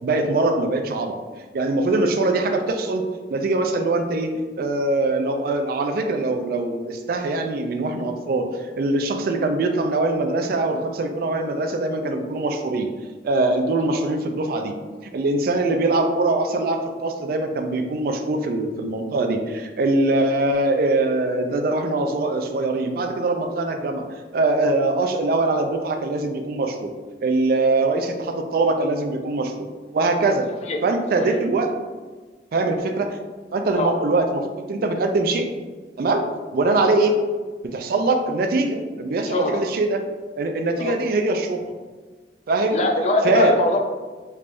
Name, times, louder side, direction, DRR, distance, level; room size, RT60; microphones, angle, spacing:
voice 1, 0.0-1.2 1.5-12.9 13.2-14.7 15.1-24.0 24.3-26.9 27.2-29.7 29.9-30.5 30.8-31.7 32.5-33.2 33.5-35.5 36.0-36.3 36.5-37.2 37.6-40.0 40.4-41.6 42.5-42.8 43.2-43.6, right 2 dB, 55° right, 6 dB, 0.3 m, -22 dB
voice 2, 39.3-39.6 40.8-41.0 42.7-43.8, left 2 dB, 35° left, 3 dB, 0.3 m, -23 dB
3.3 x 3.2 x 2.5 m, 1.4 s
head